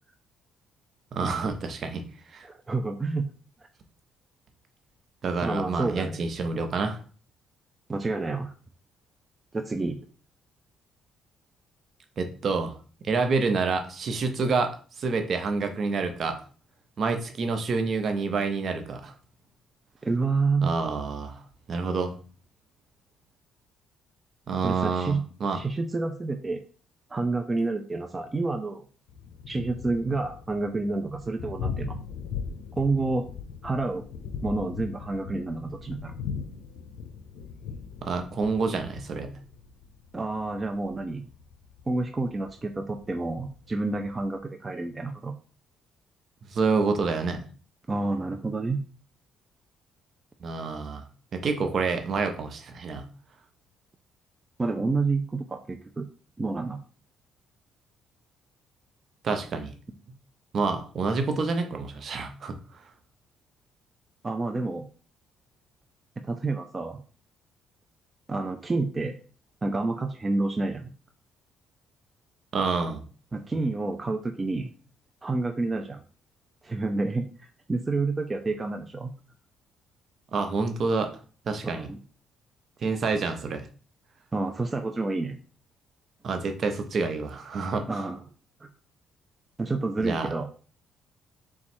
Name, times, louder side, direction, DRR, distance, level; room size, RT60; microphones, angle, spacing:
voice 1, 1.1-2.0 2.3-2.4 5.2-7.0 12.2-12.8 13.0-16.4 17.0-19.1 20.6-21.4 21.7-22.1 24.5-25.6 38.0-39.3 46.5-47.4 50.4-51.0 51.3-53.1 59.2-59.7 60.5-62.5 72.5-73.0 80.3-81.1 81.5-81.9 82.8-83.6 86.2-88.0 90.0-90.3, right 4 dB, 50° right, 6 dB, 0.8 m, -28 dB
voice 2, 2.4-3.3 5.4-6.2 7.9-8.5 9.5-10.0 20.0-20.7 24.6-25.2 25.5-26.6 27.1-28.8 29.5-32.0 32.8-33.3 33.6-34.0 34.4-36.1 40.1-41.3 41.9-45.3 47.9-48.8 54.6-56.1 56.4-56.8 64.2-64.9 66.3-67.0 68.3-69.2 69.6-70.9 73.3-74.7 75.2-76.0 76.6-77.3 77.7-79.1 81.7-82.0 84.3-85.4 87.9-88.2 88.6-88.7 89.6-90.5, right 3 dB, 25° right, 5 dB, 0.4 m, -29 dB
Thunder, 29.1-44.4, left 6 dB, 80° left, 0.5 m, -39 dB
4.1 x 2.3 x 4.4 m, 0.40 s
cardioid pair, 85°, 0 cm